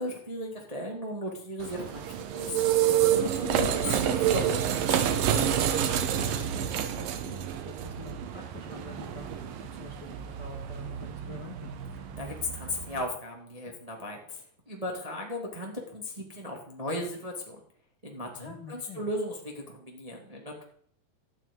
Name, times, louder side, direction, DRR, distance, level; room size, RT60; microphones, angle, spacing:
voice 1, 0.0-2.7 3.1-4.8 12.2-17.6 18.0-20.6, left 1 dB, 15° right, 0 dB, 1.8 m, -36 dB
sound 1, 1.6-13.0, right 10 dB, 90° right, 2.9 m, -29 dB
voice 2, 6.0-11.7 18.3-19.0, left 3 dB, 35° left, 0 dB, 2.2 m, -46 dB
13.0 x 6.3 x 9.5 m, 0.63 s
omnidirectional pair, 3.9 m